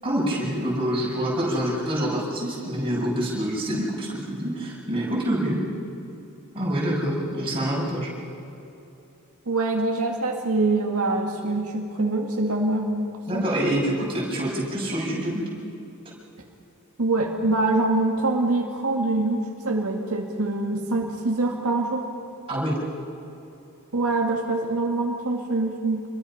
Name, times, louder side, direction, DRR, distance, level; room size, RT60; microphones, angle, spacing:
voice 1, 0.0-5.6 6.5-8.1 13.3-15.4 22.5-22.7, right 1 dB, 25° right, -5 dB, 6.9 m, -26 dB
voice 2, 9.5-13.5 17.0-22.1 23.9-26.0, right 2 dB, 80° right, 0 dB, 2.0 m, -24 dB
28.0 x 22.0 x 5.7 m, 2.8 s
head